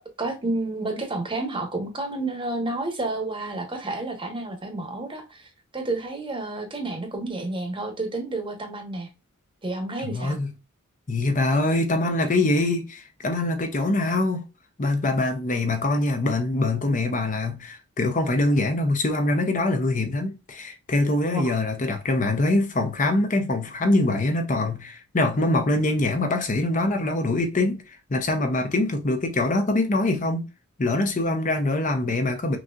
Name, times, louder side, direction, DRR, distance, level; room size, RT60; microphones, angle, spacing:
voice 1, 0.2-5.5 5.7-9.1 9.6-10.4 21.3-21.5, right 2 dB, 25° right, 0.9 m, -30 dB
voice 2, 10.1-10.5 11.1-14.5 14.8-30.4 30.8-32.6, left 2 dB, 35° left, 0.6 m, -24 dB
6.0 x 2.8 x 2.4 m
head